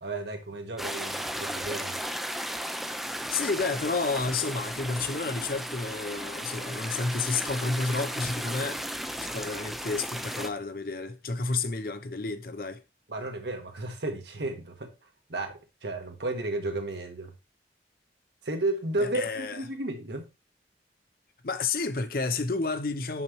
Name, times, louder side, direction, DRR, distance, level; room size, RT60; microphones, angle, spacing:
voice 1, 0.0-2.0 13.1-14.9 15.3-17.3 18.4-20.3, right 2 dB, 75° right, 1.5 m, -33 dB
sound 1, 0.8-10.5, equal, ahead, 0.4 m, -35 dB
voice 2, 3.3-12.8 19.0-19.6 21.4-23.2, left 3 dB, 55° left, 0.7 m, -31 dB
6.6 x 5.8 x 3.0 m
head